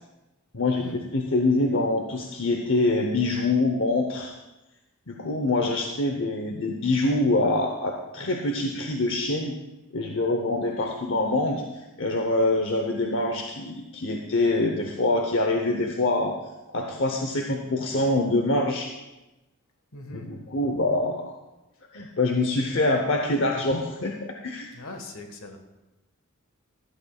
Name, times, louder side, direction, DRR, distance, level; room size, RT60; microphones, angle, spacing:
voice 1, 1.1-4.3 5.1-9.5 9.9-11.6 12.0-16.4 16.7-18.9 20.1-21.3 21.9-24.1 24.4-24.7, left 2 dB, 60° left, 2 dB, 0.8 m, -25 dB
voice 2, 19.9-20.3 24.7-25.6, left 2 dB, 75° left, 5 dB, 1.5 m, -40 dB
16.0 x 11.5 x 2.4 m, 1.0 s
head